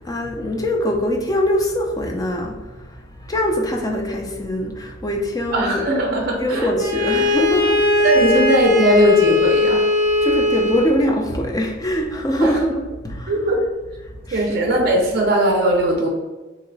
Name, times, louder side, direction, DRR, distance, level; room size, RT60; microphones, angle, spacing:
voice 1, 0.0-5.9 6.4-8.4 10.2-13.5 13.9-14.9, equal, 20° left, 1 dB, 0.4 m, -23 dB
voice 2, 5.5-6.7 8.0-9.9 12.4-12.5 13.3-13.6 14.3-16.1, right 1 dB, 50° right, 0 dB, 0.5 m, -18 dB
Bowed string instrument, 6.8-11.0, left 3 dB, 15° right, 0.7 m, -19 dB
2.9 x 2.1 x 3.8 m, 1.2 s
head